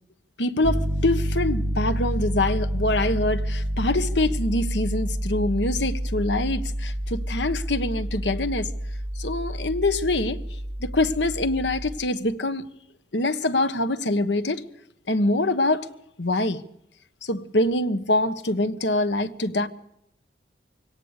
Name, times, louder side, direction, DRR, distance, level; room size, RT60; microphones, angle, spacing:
voice 1, 0.4-8.7 9.1-10.4 10.8-12.6 13.1-14.6 15.1-15.9 16.2-16.6 17.2-19.7, left 2 dB, 90° left, 1.4 m, -24 dB
Piano, 0.6-12.0, equal, 10° right, 3.7 m, -28 dB
23.5 x 18.0 x 6.7 m
head